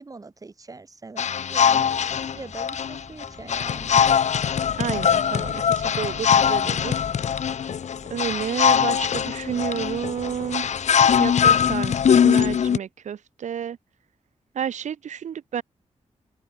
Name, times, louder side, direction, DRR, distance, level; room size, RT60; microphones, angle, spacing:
voice 1, 0.0-4.0 11.4-11.6, right 3 dB, 30° right, 5.5 m, -42 dB
sound 1, 1.2-12.8, left 8 dB, 75° left, 0.9 m, -21 dB
sound 2, 1.6-11.8, right 1 dB, 5° right, 7.1 m, -49 dB
voice 2, 4.8-7.0 8.1-10.7 11.2-13.8 14.5-15.6, right 8 dB, 85° right, 0.8 m, -30 dB
open air
wide cardioid pair, 150°, 12 cm